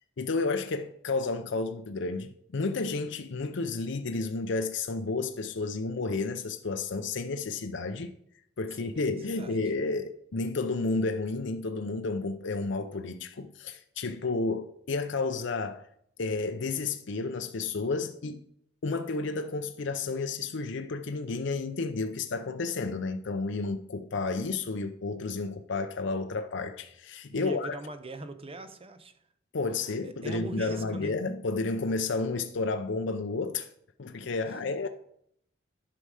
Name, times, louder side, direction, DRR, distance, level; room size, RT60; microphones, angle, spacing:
voice 1, 0.2-8.1 8.6-15.8 16.2-18.5 18.8-27.7 29.5-33.7 34.0-34.9, left 3 dB, 65° left, 0.6 m, -31 dB
voice 2, 9.3-9.6 27.3-29.1 30.0-31.2, right 2 dB, 30° right, 0.8 m, -41 dB
11.5 x 5.5 x 4.9 m
head